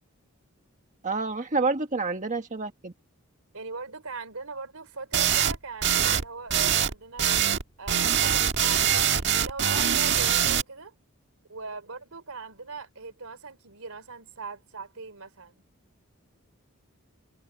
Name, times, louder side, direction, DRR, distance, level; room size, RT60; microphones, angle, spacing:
voice 1, 1.0-2.9, right 3 dB, 35° right, 1.5 m, -28 dB
voice 2, 3.5-7.3 7.8-10.9 11.5-15.6, right 4 dB, 85° right, 3.4 m, -40 dB
sound 1, 5.1-5.6 5.8-6.2 6.5-6.9 7.2-7.6 7.9-10.6, right 9 dB, 55° right, 1.5 m, -23 dB
head